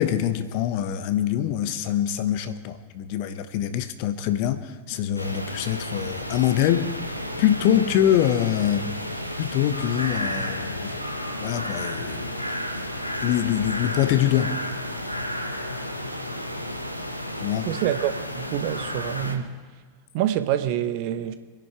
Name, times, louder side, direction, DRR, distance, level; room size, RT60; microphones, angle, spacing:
voice 1, 0.0-6.9 7.4-8.9 9.4-10.9 11.4-12.4 13.2-14.6 17.4-17.7, left 11 dB, 45° left, 1.1 m, -24 dB
sound 1, 5.2-19.4, left 1 dB, 90° left, 1.4 m, -32 dB
voice 2, 17.6-19.5 20.1-21.3, right 11 dB, 45° right, 1.0 m, -26 dB
26.0 x 10.5 x 4.7 m
figure-of-eight pair, 90°, 0 cm